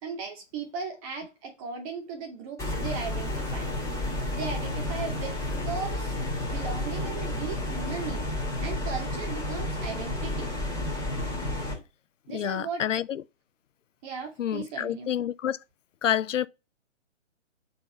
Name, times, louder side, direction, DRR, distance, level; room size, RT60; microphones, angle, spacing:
voice 1, 0.0-3.7 4.3-6.2 6.5-8.2 8.6-10.5 12.3-12.8 14.0-15.1, right 5 dB, 30° right, 2.1 m, -37 dB
sound 1, 2.6-11.7, left 1 dB, 10° left, 2.3 m, -31 dB
voice 2, 12.3-13.2 14.4-15.6 16.0-16.5, left 10 dB, 80° left, 0.5 m, -28 dB
4.2 x 4.2 x 5.5 m
figure-of-eight pair, 140°, 37 cm